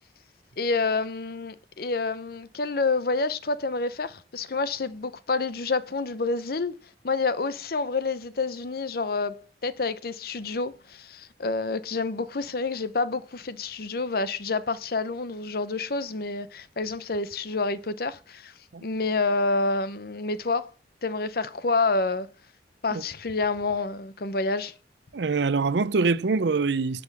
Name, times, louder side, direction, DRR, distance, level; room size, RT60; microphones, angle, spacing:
voice 1, 0.6-6.8 7.0-18.5 18.8-20.7 21.0-22.3 22.8-24.7, left 3 dB, 55° left, 0.7 m, -28 dB
voice 2, 25.1-27.0, right 4 dB, 75° right, 0.6 m, -24 dB
9.9 x 6.1 x 7.4 m
head